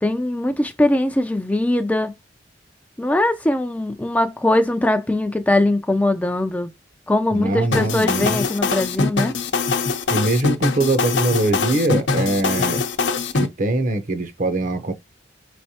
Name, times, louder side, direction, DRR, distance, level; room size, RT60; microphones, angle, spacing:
voice 1, 0.0-2.1 3.0-6.7 7.1-9.3, left 1 dB, 10° left, 0.4 m, -21 dB
voice 2, 7.3-8.4 10.1-12.8 13.3-14.9, right 2 dB, 45° right, 0.8 m, -22 dB
sound 1, 7.7-13.5, left 4 dB, 85° left, 0.7 m, -22 dB
5.3 x 3.2 x 2.8 m
head